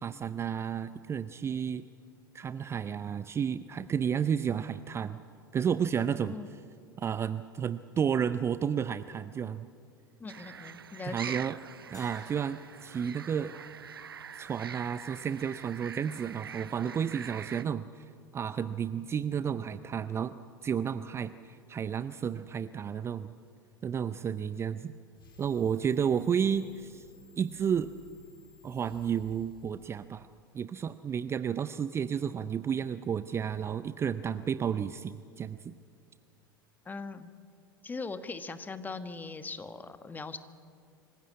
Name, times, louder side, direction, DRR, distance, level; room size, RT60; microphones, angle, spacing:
voice 1, 0.0-1.8 2.3-5.2 5.5-6.4 7.0-9.7 11.1-11.6 11.9-13.5 14.4-18.0 18.3-23.3 23.8-24.9 25.4-27.0 27.4-27.9 28.6-30.3 30.5-35.7, right 7 dB, 20° right, 13 dB, 0.5 m, -32 dB
voice 2, 10.2-11.4 36.8-37.3 37.8-40.4, left 4 dB, 15° left, 11 dB, 1.3 m, -40 dB
sound 1, 10.3-17.6, right 7 dB, 80° right, 0.5 m, -44 dB
sound 2, 11.9-14.5, left 4 dB, 30° left, 4.9 m, -60 dB
sound 3, 25.1-30.6, left 3 dB, 75° left, 3.0 m, -57 dB
25.5 x 16.0 x 8.6 m, 2.3 s
figure-of-eight pair, 80°, 12 cm